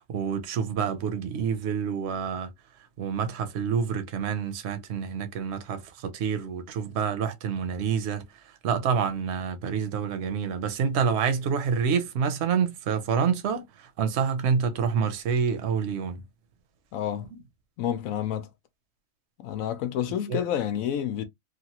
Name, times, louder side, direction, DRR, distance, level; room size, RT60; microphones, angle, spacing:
voice 1, 0.0-2.5 3.0-8.2 8.6-16.2 20.3-20.4, right 6 dB, 60° right, 0.9 m, -27 dB
voice 2, 16.9-17.3 17.8-18.5 19.4-21.2, left 10 dB, 85° left, 1.0 m, -29 dB
2.9 x 2.4 x 2.8 m
omnidirectional pair, 1.4 m